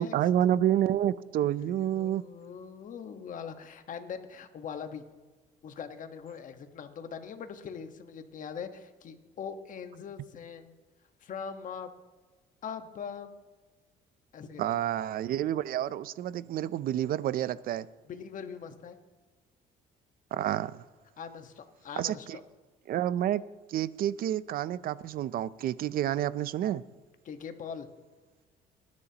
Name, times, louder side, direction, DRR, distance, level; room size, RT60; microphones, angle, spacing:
voice 1, 0.0-2.2 14.6-17.9 20.3-20.8 22.0-22.4 22.9-23.4 23.7-26.8, right 11 dB, 60° right, 0.5 m, -29 dB
voice 2, 1.6-5.0 5.6-10.8 11.2-11.9 12.6-13.3 14.3-14.6 18.0-19.0 21.2-22.4 27.2-27.9, left 7 dB, 50° left, 1.4 m, -41 dB
21.0 x 10.5 x 2.9 m
cardioid pair, 110°, 17 cm